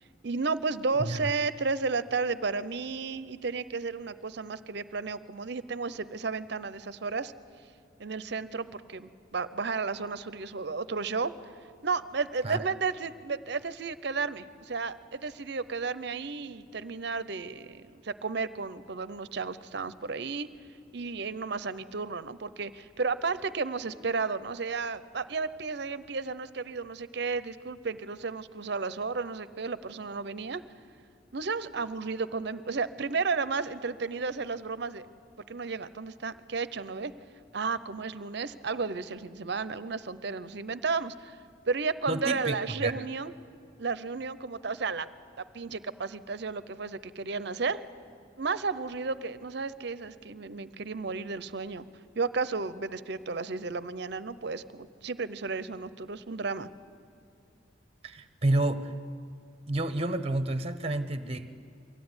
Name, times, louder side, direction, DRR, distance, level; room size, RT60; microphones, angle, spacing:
voice 1, 0.2-7.3 8.0-11.3 11.8-20.5 20.9-30.6 31.3-35.0 35.5-37.1 37.5-41.4 41.7-43.3 43.8-45.1 45.5-47.8 48.4-51.9 52.2-56.7, right 4 dB, 55° right, 15 dB, 0.7 m, -33 dB
voice 2, 42.1-42.9 58.0-58.9 59.7-61.5, right 2 dB, 30° right, 11 dB, 0.9 m, -29 dB
23.0 x 15.5 x 9.7 m, 2.4 s
head